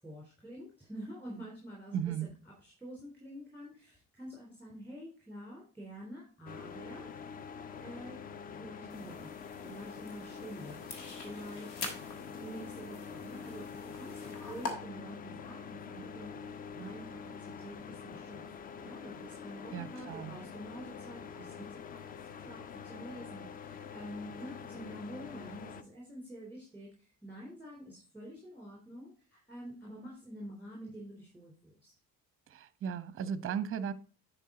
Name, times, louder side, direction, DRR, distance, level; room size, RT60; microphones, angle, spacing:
voice 1, 0.0-2.3 2.6-7.1 7.8-8.2 8.6-9.3 9.6-12.0 12.3-18.4 18.8-31.9, equal, 5° left, -3 dB, 3.6 m, -47 dB
voice 2, 1.9-2.3 19.7-20.4 32.5-33.9, right 8 dB, 25° right, 14 dB, 0.7 m, -36 dB
sound 1, 6.5-25.8, left 6 dB, 20° left, 0.3 m, -46 dB
sound 2, 8.9-14.7, left 3 dB, 75° left, 1.5 m, -45 dB
10.0 x 4.6 x 4.0 m, 0.39 s
figure-of-eight pair, 50°, 49 cm